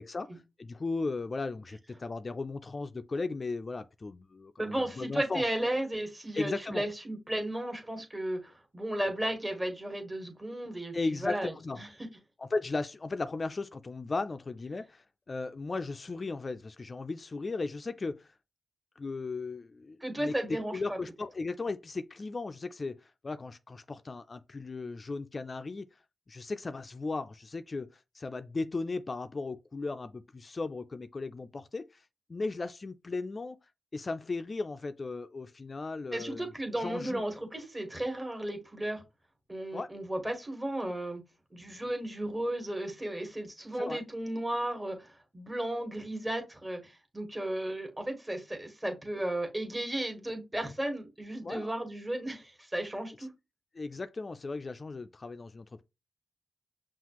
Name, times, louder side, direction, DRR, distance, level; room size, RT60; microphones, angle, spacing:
voice 1, 0.0-5.4 6.3-6.8 10.9-11.8 12.4-18.3 19.0-25.9 26.3-32.0 32.3-33.6 33.9-36.5 36.8-37.2 39.7-39.9 43.8-44.0 51.4-51.7 53.7-55.8, left 3 dB, 45° left, 0.3 m, -36 dB
voice 2, 4.6-11.5 11.8-11.9 20.0-21.0 36.1-39.0 39.5-41.2 41.5-53.3, right 1 dB, 20° right, 1.5 m, -34 dB
5.7 x 2.4 x 3.0 m
cardioid pair, 60°, 0 cm